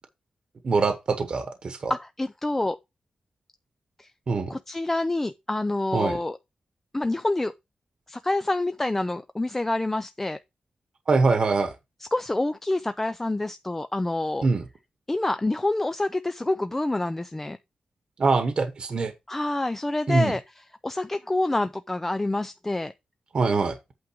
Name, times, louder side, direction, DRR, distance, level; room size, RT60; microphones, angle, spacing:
voice 1, 0.6-1.9 4.3-4.5 5.9-6.2 11.1-11.7 14.4-14.7 18.2-19.1 20.1-20.3 23.3-23.8, right 4 dB, 45° right, 1.1 m, -23 dB
voice 2, 1.9-2.8 4.0-4.1 4.5-6.4 6.9-7.5 8.1-10.4 12.1-14.5 15.1-17.6 19.3-20.4 20.8-22.9, left 2 dB, 15° left, 0.4 m, -27 dB
8.6 x 3.7 x 6.3 m
wide cardioid pair, 170°, 2 cm